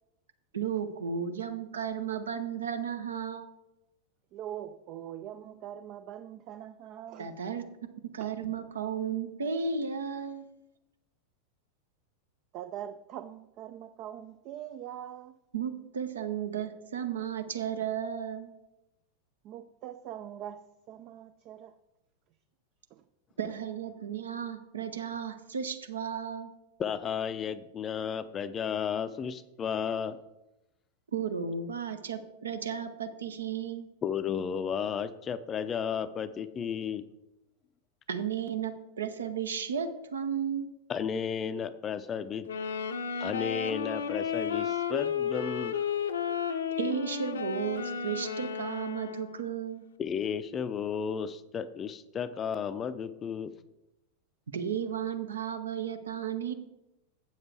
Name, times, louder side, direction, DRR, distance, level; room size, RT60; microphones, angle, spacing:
voice 1, 0.5-3.5 7.2-7.7 8.1-10.5 15.5-18.5 23.4-26.5 31.1-33.9 38.1-40.7 46.8-49.9 54.5-56.5, right 7 dB, 70° right, 0.8 m, -34 dB
voice 2, 4.3-7.4 8.2-8.4 12.5-15.3 19.4-21.8 22.9-23.0, right 10 dB, 40° right, 0.4 m, -43 dB
voice 3, 26.8-30.2 34.0-37.0 40.9-42.5 43.2-45.7 50.0-53.5, left 7 dB, 25° left, 0.5 m, -33 dB
sound 1, 42.4-49.5, left 7 dB, 65° left, 0.6 m, -33 dB
7.9 x 7.2 x 4.6 m
figure-of-eight pair, 90°, 0 cm